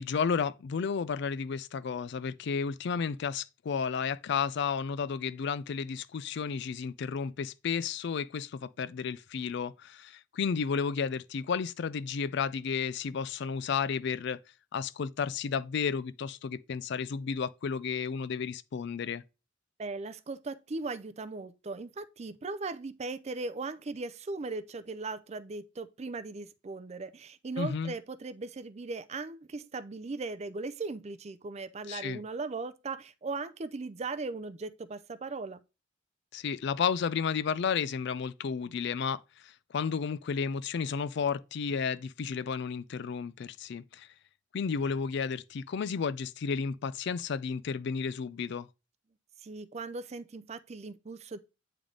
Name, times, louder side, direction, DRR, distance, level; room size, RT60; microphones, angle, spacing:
voice 1, 0.0-14.4 14.7-19.2 27.6-27.9 31.9-32.2 36.3-44.1 44.5-48.7, left 6 dB, 60° left, 0.4 m, -32 dB
voice 2, 19.8-35.6 49.4-51.4, right 3 dB, 35° right, 0.4 m, -38 dB
8.6 x 3.4 x 3.8 m
head